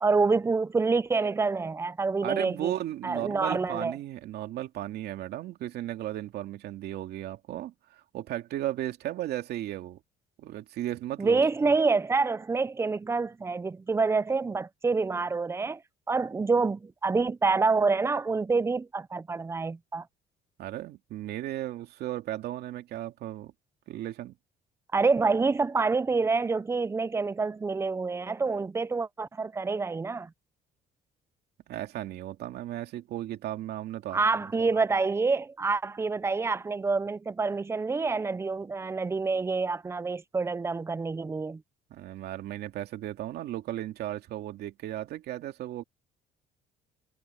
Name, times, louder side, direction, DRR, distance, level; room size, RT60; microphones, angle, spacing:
voice 1, 0.0-2.7 3.0-4.0 11.2-15.8 16.1-20.1 24.9-30.3 34.1-41.6, right 4 dB, 15° right, 0.5 m, -27 dB
voice 2, 2.2-10.0 10.4-11.7 20.6-23.5 23.9-24.3 31.7-34.7 41.9-45.8, right 13 dB, 75° right, 2.5 m, -35 dB
cardioid pair, 110°, 17 cm